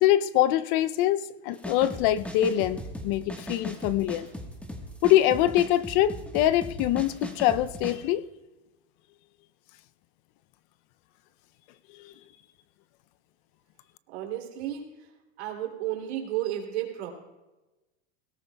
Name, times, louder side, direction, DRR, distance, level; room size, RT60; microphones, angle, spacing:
voice 1, 0.0-2.8 3.0-4.3 5.0-8.2, left 12 dB, 50° left, 14 dB, 0.6 m, -24 dB
sound 1, 1.5-8.0, equal, 5° left, 1.3 m, -38 dB
voice 2, 14.1-15.1 15.4-17.1, right 12 dB, 75° right, 2 dB, 3.1 m, -33 dB
20.5 x 17.5 x 2.3 m, 1.1 s
supercardioid pair, 130°, 33 cm